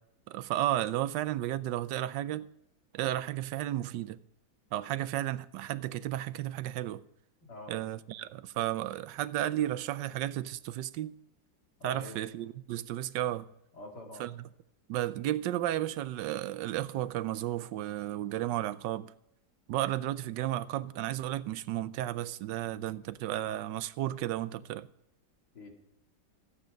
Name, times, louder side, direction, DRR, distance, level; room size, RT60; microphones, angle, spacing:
voice 1, 0.3-2.5 2.9-4.2 4.7-7.0 7.7-11.1 11.8-13.5 14.2-14.3 14.9-19.1 19.7-24.9, right 13 dB, 90° right, 1.3 m, -33 dB
voice 2, 7.4-7.7 11.8-12.2 13.7-14.3 25.5-25.8, left 2 dB, 70° left, 3.1 m, -45 dB
15.0 x 8.6 x 5.1 m
omnidirectional pair, 1.9 m